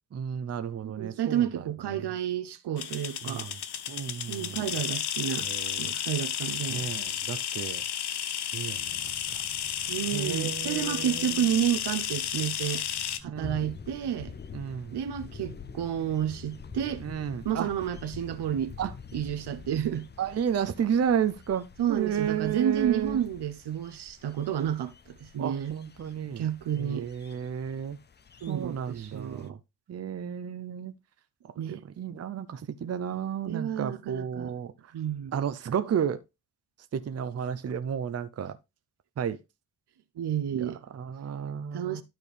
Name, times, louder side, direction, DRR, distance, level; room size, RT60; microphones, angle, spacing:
voice 1, 0.1-2.1 3.2-3.6 3.9-4.6 5.4-5.9 6.7-7.8 8.5-9.4 10.1-11.5 13.3-13.6 14.5-14.9 17.0-17.7 18.8-18.9 20.2-23.2 25.4-26.4 26.7-28.0 28.5-29.6 29.9-30.9 31.7-34.9 35.3-36.2 36.9-38.6 39.2-39.4 40.5-42.0, right 8 dB, 40° right, 0.6 m, -32 dB
voice 2, 0.8-3.5 4.3-5.5 5.8-6.9 9.9-12.8 13.2-14.3 14.9-17.0 17.4-18.7 19.1-20.1 21.8-25.8 26.4-27.1 28.4-29.6 31.6-31.8 33.5-34.5 34.9-35.3 40.2-40.8 41.7-42.0, right 10 dB, 80° right, 0.9 m, -30 dB
sound 1, 2.8-13.2, left 10 dB, 80° left, 0.8 m, -32 dB
sound 2, 8.7-22.0, equal, ahead, 1.2 m, -53 dB
sound 3, 13.3-29.5, left 6 dB, 25° left, 0.5 m, -48 dB
12.0 x 4.5 x 3.3 m
wide cardioid pair, 135°, 39 cm